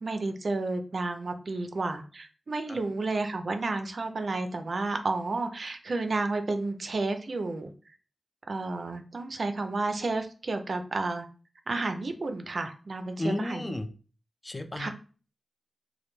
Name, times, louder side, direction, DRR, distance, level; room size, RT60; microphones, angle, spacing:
voice 1, 0.0-7.7 8.5-11.3 11.7-13.7 14.8-14.9, right 3 dB, 60° right, 7 dB, 0.4 m, -31 dB
voice 2, 13.2-13.9 14.4-14.9, left 1 dB, 25° left, 7 dB, 0.3 m, -32 dB
2.1 x 2.1 x 3.0 m, 0.37 s
cardioid pair, 65°, 0 cm